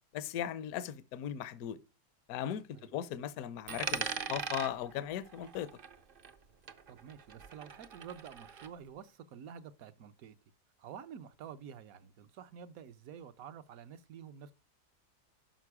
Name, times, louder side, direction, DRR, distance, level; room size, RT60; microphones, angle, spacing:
voice 1, 0.1-1.8 2.3-5.7, left 10 dB, 70° left, 1.1 m, -38 dB
Coin (dropping), 3.7-6.4 6.7-8.7, right 5 dB, 50° right, 0.7 m, -41 dB
voice 2, 6.9-10.4 10.8-14.5, right 8 dB, 65° right, 1.2 m, -49 dB
12.0 x 5.3 x 4.8 m
omnidirectional pair, 1.7 m